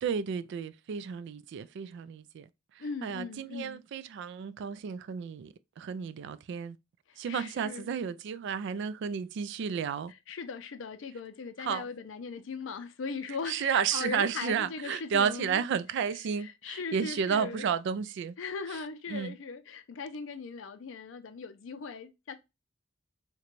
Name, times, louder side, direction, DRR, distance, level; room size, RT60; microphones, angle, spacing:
voice 1, 0.0-2.4 3.0-6.8 7.2-10.1 11.7-11.8 13.5-18.3 19.1-19.3, right 7 dB, 65° right, 0.3 m, -32 dB
voice 2, 2.8-3.8 7.1-7.9 10.1-15.6 16.3-17.7 18.4-22.3, left 4 dB, 70° left, 0.5 m, -39 dB
3.8 x 2.2 x 2.9 m
head